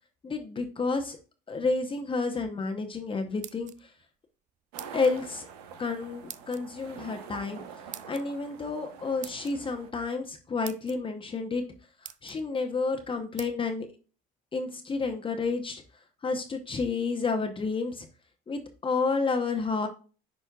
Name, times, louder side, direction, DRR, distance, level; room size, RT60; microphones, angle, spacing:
voice 1, 0.2-1.2 1.5-3.9 4.9-5.5 5.8-7.6 8.1-11.6 12.2-13.9 14.5-15.8 16.2-18.1 18.5-19.9, left 4 dB, 25° left, 4 dB, 0.9 m, -30 dB
sound 1, 3.2-4.1 4.8-5.2 6.3-6.6 7.9-8.2 9.2-9.6 10.3-10.4 10.6-11.0 11.6-11.7 12.0-12.4 13.4-13.5, right 10 dB, 40° right, 0.5 m, -43 dB
sound 2, 4.7-9.9, right 6 dB, 90° right, 1.0 m, -46 dB
10.0 x 4.3 x 2.4 m, 0.36 s
supercardioid pair, 90°, 19 cm